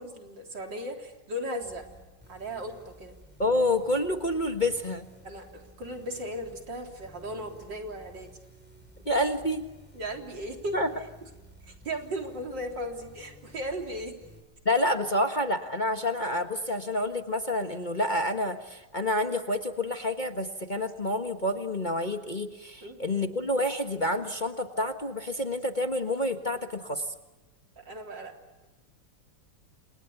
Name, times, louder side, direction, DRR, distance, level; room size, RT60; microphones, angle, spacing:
voice 1, 0.0-1.8 2.3-3.2 5.2-8.3 9.9-10.8 11.7-14.2 22.8-23.0 27.8-28.3, equal, 70° right, 3 dB, 4.4 m, -36 dB
sound 1, 1.6-14.4, equal, 5° right, 6.7 m, -53 dB
voice 2, 3.4-5.1 9.0-9.6 10.7-10.9 14.6-27.1, left 1 dB, 25° left, 5 dB, 1.4 m, -28 dB
29.5 x 28.0 x 7.1 m, 1.1 s
omnidirectional pair, 2.0 m